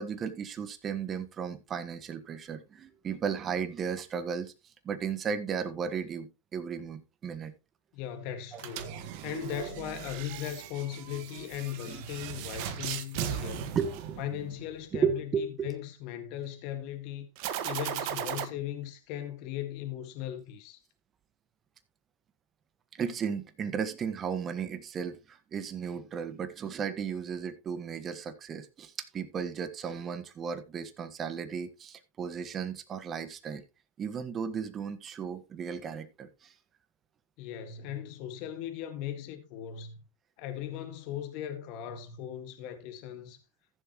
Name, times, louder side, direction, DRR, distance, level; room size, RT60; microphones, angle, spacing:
voice 1, 0.0-4.5 4.8-7.5 8.5-8.6 11.9-12.0 13.7-14.2 14.9-15.7 23.0-33.6 34.0-36.5, right 6 dB, 25° right, 1.5 m, -35 dB
voice 2, 7.9-13.7 14.2-17.3 17.6-20.8 37.4-40.0 40.4-43.4, left 10 dB, 50° left, 1.9 m, -38 dB
sound 1, 8.5-14.7 17.4-18.4, right 10 dB, 55° right, 1.5 m, -37 dB
15.0 x 7.2 x 3.1 m
hypercardioid pair, 115°, 0 cm